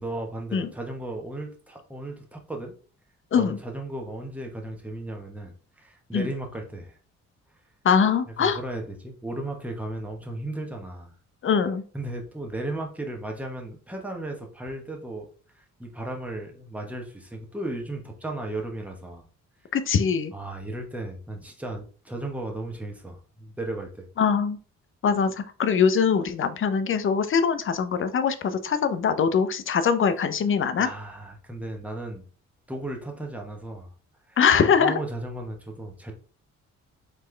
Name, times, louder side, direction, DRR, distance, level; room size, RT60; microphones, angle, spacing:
voice 1, 0.0-2.7 3.3-7.0 8.3-11.1 11.9-15.3 15.5-19.3 20.3-24.1 30.8-32.3 32.7-33.9 34.3-36.1, right 1 dB, 5° right, 1 dB, 1.1 m, -35 dB
voice 2, 7.8-8.6 11.4-11.8 19.7-20.3 24.2-24.6 25.0-30.9 34.4-35.0, left 6 dB, 45° left, 10 dB, 0.6 m, -22 dB
4.1 x 3.2 x 3.2 m, 0.40 s
cardioid pair, 90°, 30 cm